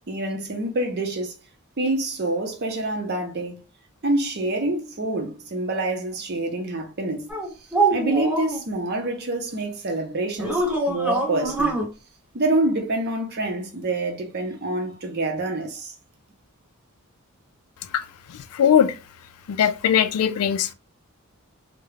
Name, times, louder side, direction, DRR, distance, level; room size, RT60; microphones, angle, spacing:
voice 1, 0.1-1.3 1.8-3.6 4.0-7.3 7.9-11.8 12.3-15.9, right 2 dB, 45° right, 0.6 m, -26 dB
sound 1, 7.3-8.6 10.4-11.9, right 2 dB, 5° right, 0.7 m, -24 dB
voice 2, 18.5-19.0 19.5-20.7, left 8 dB, 80° left, 0.3 m, -20 dB
2.3 x 2.1 x 3.2 m
head